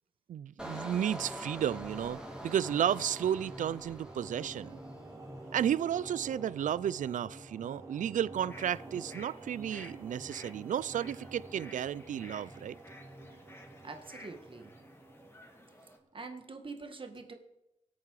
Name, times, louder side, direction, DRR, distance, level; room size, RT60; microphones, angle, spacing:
voice 1, 0.3-4.8 5.5-12.7, right 10 dB, 75° right, 0.4 m, -33 dB
Engine, 0.6-5.2 5.6-6.0, equal, 5° right, 3.1 m, -45 dB
sound 1, 0.8-16.1, right 2 dB, 25° right, 4.2 m, -49 dB
sound 2, 8.5-16.0, left 1 dB, 20° left, 2.3 m, -54 dB
voice 2, 13.8-14.7 16.1-17.3, right 3 dB, 40° right, 1.8 m, -44 dB
24.0 x 8.5 x 4.8 m
cardioid pair, 85°, 13 cm